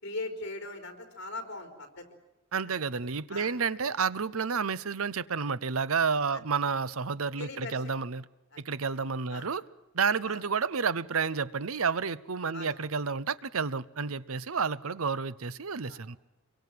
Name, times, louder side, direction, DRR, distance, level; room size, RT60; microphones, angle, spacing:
voice 1, 0.0-2.1 3.3-3.5 6.3-6.4 7.4-7.9 8.5-8.6 9.3-9.5 10.2-10.4 12.5-12.7 15.9-16.0, left 2 dB, 55° left, 7 dB, 4.6 m, -40 dB
voice 2, 2.5-8.3 8.6-9.6 9.9-16.2, right 5 dB, 80° right, 18 dB, 0.8 m, -30 dB
26.5 x 23.5 x 7.7 m, 0.97 s
head